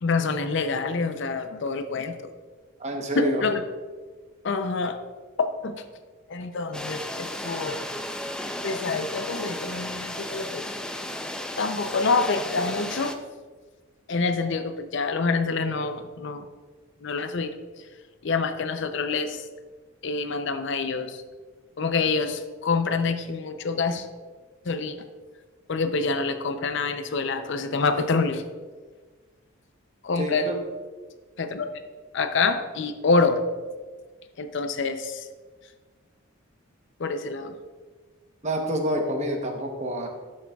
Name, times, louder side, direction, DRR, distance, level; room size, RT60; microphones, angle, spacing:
voice 1, 0.0-2.3 3.2-3.6 4.4-5.0 5.4-5.8 6.3-7.8 8.6-10.6 11.6-13.1 14.1-16.4 17.0-17.5 18.2-19.4 20.0-21.2 21.8-24.1 24.6-25.0 25.7-28.4 30.0-30.5 31.4-31.7 32.1-33.4 34.4-35.3 37.0-37.5, left 4 dB, 60° left, 8 dB, 0.5 m, -26 dB
voice 2, 2.8-3.4 30.2-30.6 38.4-40.1, equal, 35° right, 3 dB, 0.9 m, -27 dB
sound 1, 6.7-13.1, left 1 dB, 5° left, 0.3 m, -34 dB
12.0 x 6.3 x 2.3 m, 1.4 s
head